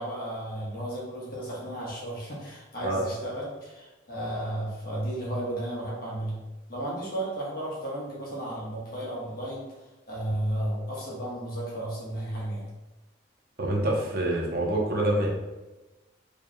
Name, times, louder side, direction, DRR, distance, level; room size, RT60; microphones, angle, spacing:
voice 1, 0.0-6.4 6.7-9.6 10.1-12.7, right 1 dB, 50° left, -5 dB, 1.3 m, -33 dB
voice 2, 13.6-15.3, right 1 dB, 50° right, -2 dB, 0.8 m, -26 dB
4.8 x 3.3 x 2.3 m, 1.1 s
head